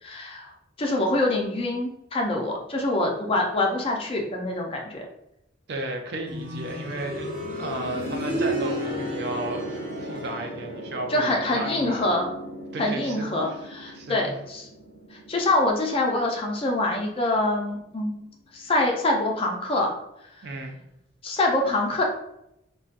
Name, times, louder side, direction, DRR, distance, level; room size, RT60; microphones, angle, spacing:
voice 1, 0.0-0.5 0.8-5.1 11.1-12.3 12.8-14.7 15.1-18.2 18.5-19.9 21.2-22.0, left 2 dB, 30° left, 1 dB, 0.4 m, -25 dB
voice 2, 5.7-7.3 7.6-12.0 12.7-13.6 13.9-14.3 20.4-20.8, right 1 dB, 55° right, 3 dB, 0.4 m, -33 dB
sound 1, 6.3-17.0 18.4-18.5, equal, 85° right, 0.8 m, -34 dB
2.5 x 2.2 x 2.4 m, 0.81 s
head